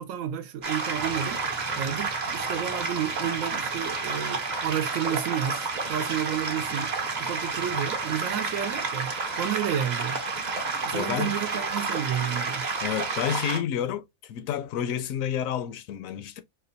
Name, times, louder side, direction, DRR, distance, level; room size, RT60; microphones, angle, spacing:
voice 1, 0.0-1.4 1.7-6.9 7.2-9.1 9.4-10.2 10.8-12.7, right 9 dB, 90° right, 1.0 m, -31 dB
sound 1, 0.6-13.6, right 4 dB, 45° right, 0.7 m, -30 dB
voice 2, 10.9-11.3 12.8-16.4, left 9 dB, 85° left, 1.0 m, -30 dB
4.3 x 2.2 x 2.6 m
omnidirectional pair, 1.4 m